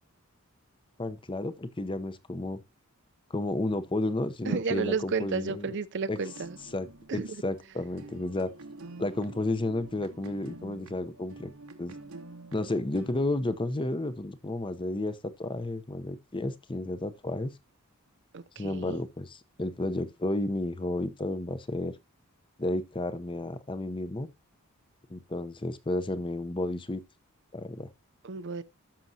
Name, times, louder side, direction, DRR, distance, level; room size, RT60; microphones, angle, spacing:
voice 1, 1.0-2.6 3.3-5.7 6.1-6.2 6.7-6.9 7.1-8.5 9.0-11.5 11.8-12.0 12.5-17.5 18.6-21.9 22.6-24.3 25.1-27.0 27.5-27.9, left 2 dB, 25° left, 0.7 m, -32 dB
voice 2, 4.5-6.6 7.1-7.3 18.3-19.0 28.2-28.6, right 4 dB, 55° right, 0.6 m, -32 dB
sound 1, 6.2-13.9, right 2 dB, 75° right, 1.0 m, -48 dB
13.5 x 6.1 x 2.7 m
head